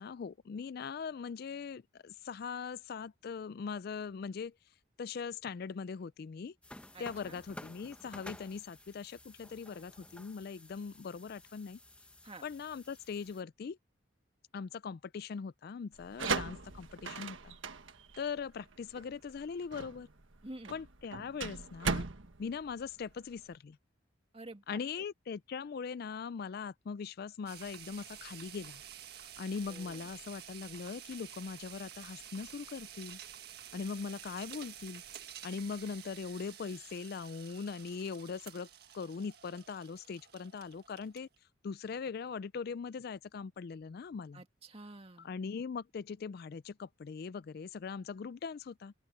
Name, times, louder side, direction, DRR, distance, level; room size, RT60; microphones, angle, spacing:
voice 1, 0.0-4.5 5.0-6.5 7.0-11.8 12.4-13.8 14.5-17.6 18.2-20.1 20.7-22.1 22.4-23.8 24.7-28.8 29.4-33.2 33.7-35.0 35.4-38.7 38.9-41.3 41.6-44.4 45.2-48.9, left 5 dB, 50° left, 0.3 m, -41 dB
sound 1, 6.6-13.4, left 1 dB, 5° left, 0.9 m, -53 dB
voice 2, 6.9-7.4 12.2-12.4 16.2-16.4 20.4-20.7 24.3-24.8 29.7-30.1 44.3-45.3, right 2 dB, 30° right, 2.0 m, -49 dB
sound 2, 15.9-23.5, right 4 dB, 75° right, 1.4 m, -39 dB
sound 3, 27.5-41.4, right 10 dB, 55° right, 1.7 m, -50 dB
open air
head